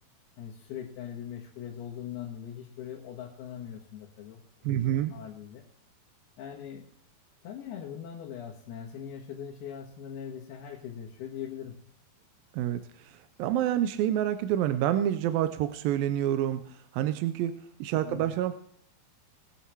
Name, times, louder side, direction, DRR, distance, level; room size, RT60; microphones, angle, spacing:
voice 1, 0.4-4.4 4.9-5.6 6.4-6.9 7.4-11.8 18.0-18.3, left 9 dB, 90° left, -2 dB, 3.4 m, -41 dB
voice 2, 4.6-5.1 12.5-17.5 17.8-18.5, right 11 dB, 80° right, 10 dB, 2.2 m, -28 dB
21.0 x 7.1 x 4.6 m, 0.63 s
omnidirectional pair, 4.4 m